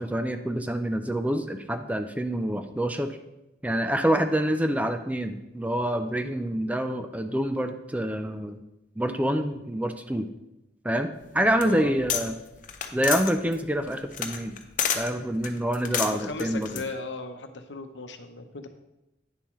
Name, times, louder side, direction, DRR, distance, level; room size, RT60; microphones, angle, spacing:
voice 1, 0.0-3.1 3.6-8.6 9.0-10.3 10.8-12.3 12.9-14.6 14.9-16.8, right 1 dB, 10° right, 8 dB, 0.4 m, -27 dB
sound 1, 11.2-12.3 12.5-15.1 15.4-16.8, left 8 dB, 45° left, 0.7 m, -30 dB
voice 2, 11.6-12.0 16.0-18.7, left 3 dB, 85° left, 7 dB, 0.8 m, -36 dB
9.4 x 7.1 x 3.1 m, 0.93 s
head